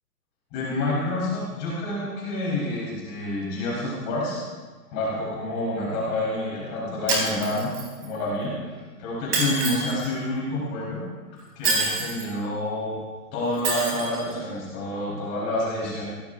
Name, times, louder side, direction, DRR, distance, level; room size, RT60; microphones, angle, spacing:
voice 1, 0.5-4.4 4.9-7.7 8.0-11.0 11.5-13.0 13.3-16.0, left 1 dB, 20° left, -7 dB, 4.6 m, -28 dB
Shatter, 7.1-8.1 9.3-10.1 11.6-12.3 13.6-14.2, right 3 dB, 35° right, 4.0 m, -26 dB
22.0 x 17.0 x 2.7 m, 1.4 s
hypercardioid pair, 160°, 49 cm